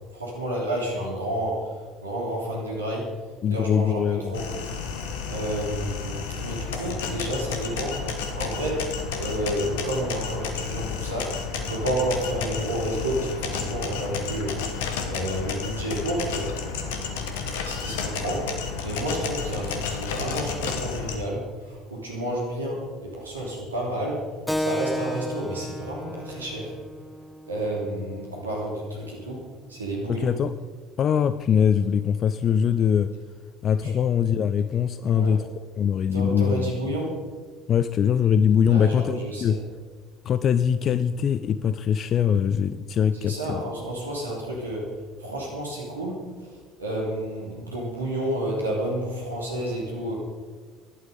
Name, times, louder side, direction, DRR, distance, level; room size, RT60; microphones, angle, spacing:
voice 1, 0.1-3.2 3.5-4.5 5.2-16.5 17.6-26.8 27.5-30.3 33.8-33.9 35.1-35.4 36.1-37.1 38.7-39.6 43.1-50.1, right 1 dB, 85° right, -2 dB, 3.0 m, -30 dB
voice 2, 3.4-4.4 30.1-30.5 31.0-33.1 33.6-35.5 35.8-36.8 37.7-39.6 40.2-43.6, left 8 dB, 45° left, 13 dB, 0.5 m, -22 dB
sound 1, 4.3-21.2, left 6 dB, 70° left, 1.8 m, -31 dB
Keyboard (musical), 24.5-29.6, equal, 5° left, 0.6 m, -34 dB
16.0 x 11.5 x 5.2 m, 1.4 s
figure-of-eight pair, 60°, 0 cm